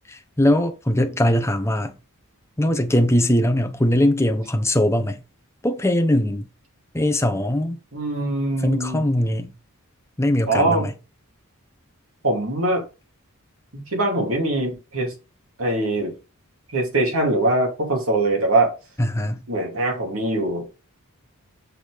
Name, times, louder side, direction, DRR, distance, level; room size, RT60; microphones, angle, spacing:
voice 1, 0.1-2.0 2.6-5.2 5.6-6.5 6.9-7.8 8.6-9.5 10.2-10.9 19.0-19.4, left 1 dB, 10° left, 0.9 m, -21 dB
voice 2, 7.9-9.1 10.5-10.9 12.2-12.8 13.7-15.1 15.6-16.1 16.7-18.7 19.5-20.8, right 2 dB, 65° right, 2.8 m, -22 dB
6.5 x 4.1 x 5.1 m
head